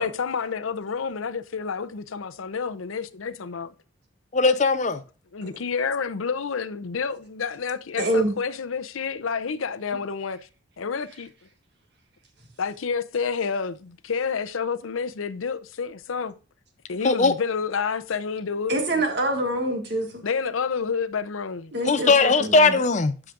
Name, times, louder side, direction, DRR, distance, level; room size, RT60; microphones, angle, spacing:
voice 1, 0.0-3.7 5.3-10.4 10.8-11.3 12.6-16.3 16.9-18.7 20.2-21.7, left 5 dB, 80° left, 0.6 m, -29 dB
voice 2, 4.3-5.0 17.0-17.3 21.9-23.1, left 3 dB, 35° left, 0.5 m, -19 dB
voice 3, 8.0-8.4 18.7-20.2 21.7-22.8, right 1 dB, 55° right, 1.8 m, -26 dB
13.5 x 4.9 x 2.5 m
head